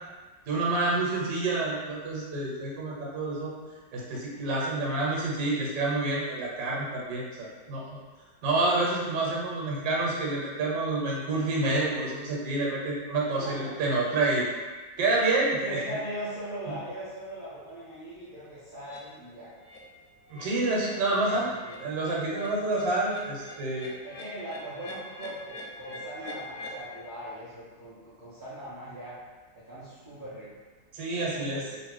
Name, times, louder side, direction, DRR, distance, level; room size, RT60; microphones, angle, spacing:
voice 1, 0.5-3.5 3.9-8.0 8.4-14.4 15.0-15.8 20.3-21.5 21.8-23.9 30.9-31.6, right 2 dB, 80° right, -3 dB, 1.4 m, -28 dB
voice 2, 13.4-13.8 15.6-19.5 21.1-21.9 24.0-29.2 29.6-30.6 31.3-31.8, right 1 dB, 55° right, -11 dB, 0.5 m, -40 dB
sound 1, 18.8-19.0 19.5-19.8 20.1-26.8, left 1 dB, 70° left, 1.0 m, -44 dB
2.9 x 2.5 x 3.2 m, 1.3 s
omnidirectional pair, 1.9 m